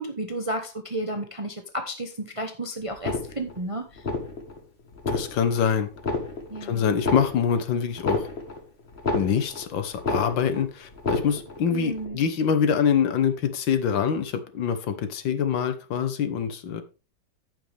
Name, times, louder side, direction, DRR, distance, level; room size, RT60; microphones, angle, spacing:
voice 1, 0.0-4.0 6.5-6.9 11.7-12.2, right 1 dB, 30° right, 0.6 m, -32 dB
sound 1, 2.9-3.6 4.0-4.6 4.9-5.6 6.0-6.6 6.9-9.7 10.0-10.6 10.9-11.6 12.0-12.1, left 3 dB, 35° left, 1.6 m, -30 dB
voice 2, 5.1-5.9 6.6-8.2 9.1-16.8, left 7 dB, 80° left, 1.8 m, -25 dB
14.5 x 5.8 x 3.4 m
omnidirectional pair, 2.1 m